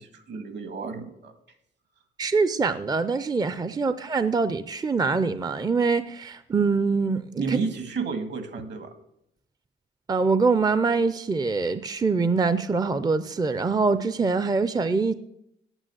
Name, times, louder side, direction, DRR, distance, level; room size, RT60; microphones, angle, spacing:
voice 1, 0.0-1.3 7.4-8.9, right 4 dB, 65° right, 1.8 m, -31 dB
voice 2, 2.2-7.6 10.1-15.1, right 4 dB, 20° right, 0.5 m, -24 dB
9.0 x 8.8 x 7.8 m
cardioid pair, 90°, 20 cm